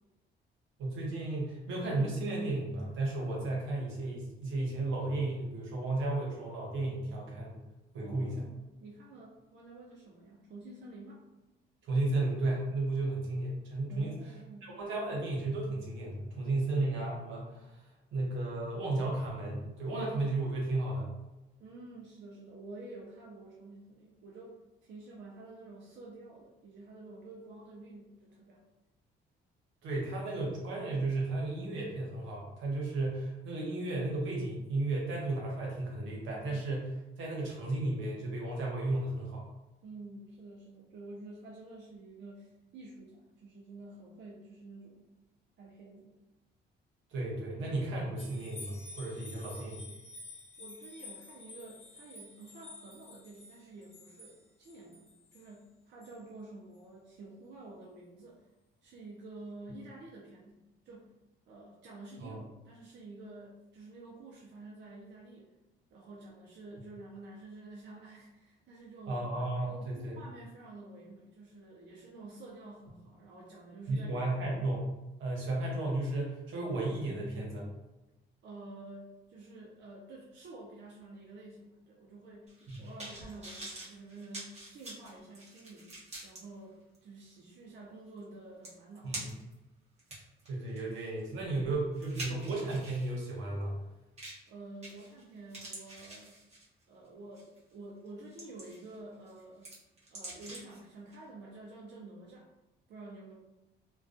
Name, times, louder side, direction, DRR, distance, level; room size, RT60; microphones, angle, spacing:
voice 1, 0.8-7.6 7.9-8.4 11.8-14.1 14.6-17.8 18.1-21.1 29.8-39.4 47.1-49.8 62.2-62.4 69.1-70.1 73.9-74.8 75.2-77.7 82.7-82.8 89.0-89.3 90.5-93.7, right 2 dB, 85° right, -3 dB, 0.8 m, -34 dB
voice 2, 8.0-11.2 13.9-14.7 21.6-28.6 39.8-45.1 45.6-46.2 50.6-55.1 55.3-58.5 58.8-61.1 61.5-65.5 65.9-69.3 69.6-74.7 78.4-89.3 94.5-96.4 96.9-99.7 100.1-102.5 102.9-103.3, right 2 dB, 60° right, -3 dB, 0.5 m, -49 dB
sound 1, 48.2-55.5 56.0-56.1, left 2 dB, 30° left, 0.6 m, -50 dB
sound 2, 82.5-86.4 86.9-87.0 88.2-88.3 88.6-89.5 90.0-93.1 94.2-94.5 94.8-95.2 95.5-96.8 97.4-97.6 98.1-98.9 99.3-100.8 101.1-101.2, right 1 dB, 35° right, 0.9 m, -46 dB
2.2 x 2.2 x 2.5 m, 1.0 s
cardioid pair, 90°, 20 cm